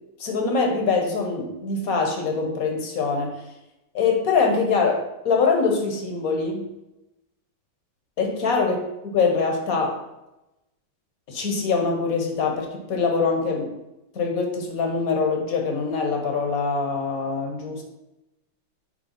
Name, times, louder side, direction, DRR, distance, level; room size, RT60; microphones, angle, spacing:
voice 1, 0.2-3.3 3.9-6.6 8.2-8.8 9.0-10.0 11.3-13.7 14.1-17.8, left 4 dB, 50° left, 2 dB, 1.3 m, -23 dB
8.1 x 3.4 x 5.4 m, 0.93 s
omnidirectional pair, 2.4 m